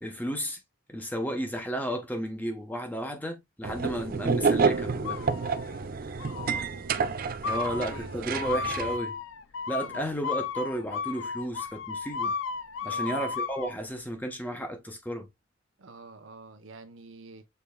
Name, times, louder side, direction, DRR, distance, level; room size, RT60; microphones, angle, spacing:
voice 1, 0.0-0.6 0.9-5.2 7.4-9.2 9.7-12.3 12.8-15.3, equal, 10° left, 0.8 m, -33 dB
sound 1, 3.6-9.0, right 5 dB, 45° right, 0.4 m, -29 dB
sound 2, 5.0-5.8 6.2-6.7 7.4-13.7, left 5 dB, 70° left, 0.4 m, -34 dB
voice 2, 6.2-6.9 7.4-8.8 9.8-10.1 12.8-13.3 15.8-17.4, right 4 dB, 75° right, 0.9 m, -46 dB
6.7 x 3.4 x 2.2 m
head